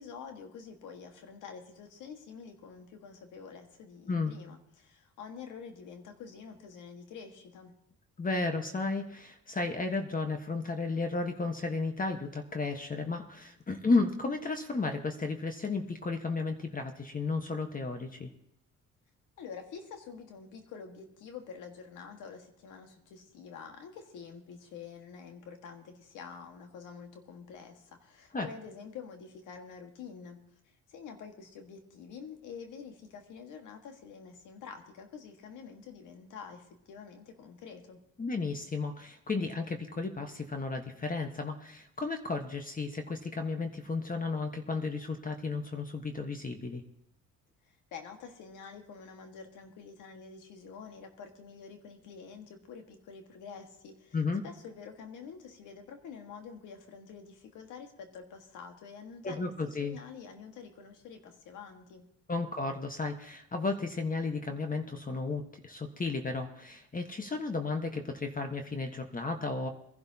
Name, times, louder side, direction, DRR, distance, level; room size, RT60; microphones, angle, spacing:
voice 1, 0.0-7.7 19.4-30.4 30.7-38.0 47.7-54.2 54.4-59.4 59.8-62.1, left 6 dB, 90° left, 4 dB, 1.8 m, -47 dB
voice 2, 8.2-18.3 28.3-28.5 38.2-46.8 54.1-54.4 59.2-60.0 62.3-69.7, left 3 dB, 30° left, 5 dB, 1.3 m, -33 dB
23.0 x 11.5 x 2.9 m, 0.78 s
cardioid pair, 90°, 30 cm